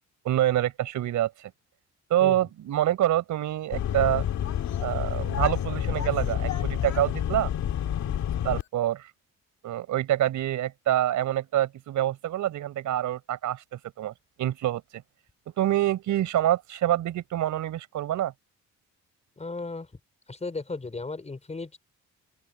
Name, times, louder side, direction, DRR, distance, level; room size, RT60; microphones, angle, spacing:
voice 1, 0.2-1.3 2.1-4.2 4.8-7.5 8.4-9.0 9.6-14.1 14.4-15.0 15.6-18.3, right 12 dB, 75° right, 4.7 m, -26 dB
sound 1, 3.7-8.6, left 10 dB, 65° left, 1.9 m, -28 dB
voice 2, 19.4-19.9 20.3-21.8, left 3 dB, 20° left, 5.1 m, -35 dB
open air
cardioid pair, 90°, 30 cm